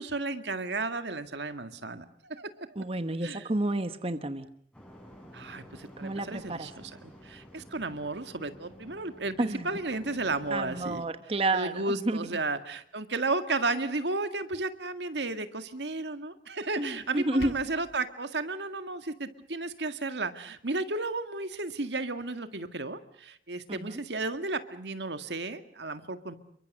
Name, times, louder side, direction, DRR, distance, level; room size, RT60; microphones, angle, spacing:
voice 1, 0.0-2.7 3.2-3.5 5.3-11.0 11.5-26.3, right 3 dB, 80° right, 9 dB, 2.0 m, -33 dB
voice 2, 2.8-4.5 6.0-6.7 9.4-9.7 10.5-12.3 16.8-17.5 23.7-24.0, right 2 dB, 35° right, 10 dB, 1.2 m, -30 dB
sound 1, 4.7-11.0, equal, 5° left, 6.8 m, -51 dB
sound 2, 17.0-18.0, left 1 dB, 75° left, 1.4 m, -44 dB
29.0 x 23.5 x 6.6 m, 0.64 s
head